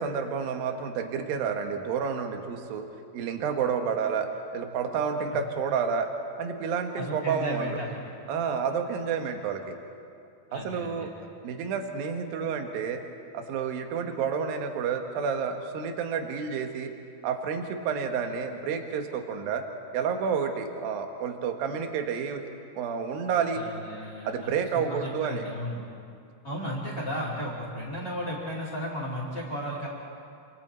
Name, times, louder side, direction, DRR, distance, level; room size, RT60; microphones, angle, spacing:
voice 1, 0.0-2.9 3.1-6.1 6.4-7.8 8.3-9.8 10.5-13.0 13.3-16.9 17.2-19.6 19.9-22.5 22.7-23.6 24.2-25.4, right 6 dB, 65° right, 5 dB, 2.7 m, -30 dB
voice 2, 6.9-8.1 10.5-11.1 23.5-25.8 26.4-29.9, equal, 25° left, -2 dB, 2.8 m, -34 dB
28.5 x 26.0 x 4.4 m, 2.4 s
omnidirectional pair, 5.6 m